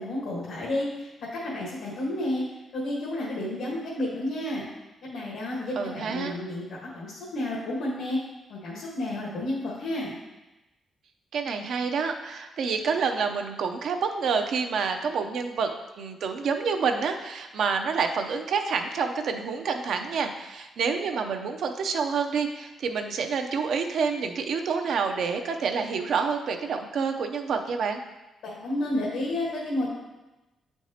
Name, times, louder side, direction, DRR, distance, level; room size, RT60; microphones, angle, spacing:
voice 1, 0.0-2.4 2.7-4.6 5.0-8.2 8.5-10.1 28.4-29.9, left 1 dB, 85° left, -5 dB, 1.4 m, -31 dB
voice 2, 5.8-6.3 11.3-15.7 16.0-28.0, right 5 dB, 65° right, 5 dB, 0.6 m, -28 dB
8.2 x 4.6 x 2.8 m, 1.0 s
cardioid pair, 135°, 0 cm